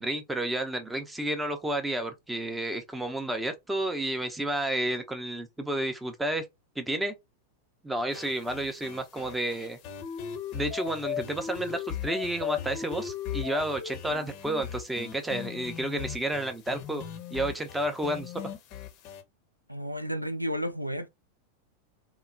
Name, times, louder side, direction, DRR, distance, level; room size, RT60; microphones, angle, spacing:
voice 1, 0.0-6.5 6.8-7.1 7.8-9.8 10.5-17.0 17.3-18.3, right 1 dB, 5° right, 0.6 m, -31 dB
sound 1, 8.1-19.2, left 9 dB, 40° left, 0.6 m, -38 dB
voice 2, 19.7-21.1, equal, 90° right, 0.3 m, -32 dB
2.9 x 2.1 x 2.5 m
figure-of-eight pair, 90°, 0 cm